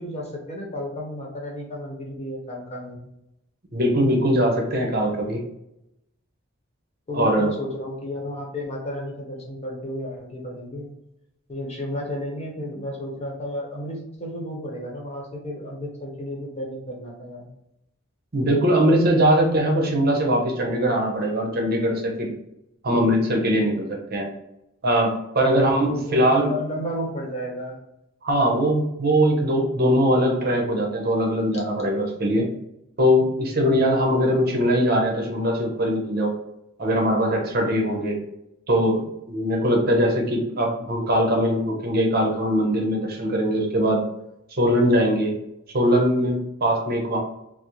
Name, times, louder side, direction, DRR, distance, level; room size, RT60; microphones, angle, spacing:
voice 1, 0.0-3.1 7.1-10.9 11.5-17.5 25.5-27.8, left 1 dB, 35° left, -1 dB, 1.0 m, -33 dB
voice 2, 3.7-5.4 7.1-7.5 18.3-22.3 22.8-24.3 24.8-26.5 28.2-32.5 33.0-36.3 36.8-38.2 38.7-44.0 44.6-45.3 45.7-47.2, equal, 50° right, 0 dB, 0.8 m, -21 dB
4.0 x 2.0 x 3.0 m, 0.84 s
head